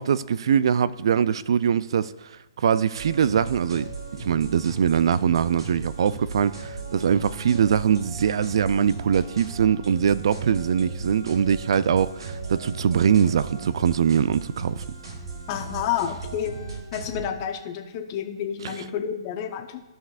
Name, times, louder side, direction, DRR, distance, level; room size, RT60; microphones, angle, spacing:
voice 1, 0.0-2.3 2.6-3.9 4.2-14.8 18.6-18.8, right 8 dB, 65° right, 0.3 m, -22 dB
sound 1, 2.9-17.3, right 4 dB, 80° right, 2.6 m, -36 dB
voice 2, 15.5-16.5 16.9-19.8, left 9 dB, 35° left, 0.9 m, -30 dB
15.5 x 5.7 x 2.4 m
hypercardioid pair, 150°, 3 cm